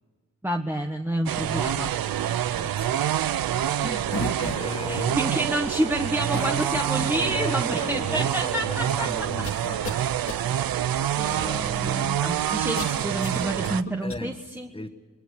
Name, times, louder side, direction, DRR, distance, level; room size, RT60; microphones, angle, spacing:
voice 1, 0.4-1.9 3.8-4.1 4.9-9.3 11.1-14.7, right 1 dB, 5° right, 1.3 m, -29 dB
sound 1, 1.3-13.8, right 11 dB, 85° right, 0.7 m, -27 dB
voice 2, 2.5-3.0 4.5-5.2 7.3-10.2 11.2-12.4 12.6-12.8 14.0-14.4 14.7-14.9, left 2 dB, 15° left, 1.8 m, -36 dB
sound 2, 4.1-4.8 6.3-7.5 8.3-8.4 9.4-10.0 10.3-10.4 12.8-14.2, left 3 dB, 40° left, 2.3 m, -35 dB
29.0 x 21.5 x 6.5 m
cardioid pair, 80°, 34 cm